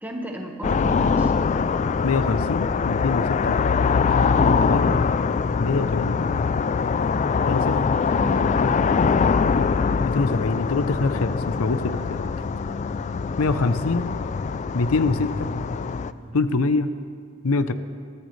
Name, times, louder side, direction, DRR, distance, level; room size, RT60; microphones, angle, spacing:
voice 1, 0.0-1.3 8.2-9.1, equal, 10° right, 1 dB, 1.5 m, -33 dB
sound 1, 0.6-16.1, left 5 dB, 35° left, 0.3 m, -23 dB
voice 2, 2.0-3.5 4.5-5.0 5.6-6.2 7.4-7.8 10.0-12.3 13.4-14.1 14.7-15.5 16.3-16.9 17.4-17.7, left 3 dB, 90° left, 11 dB, 0.7 m, -24 dB
sound 2, 7.3-16.7, right 1 dB, 25° right, 0.8 m, -45 dB
22.5 x 14.0 x 3.3 m, 2.1 s
head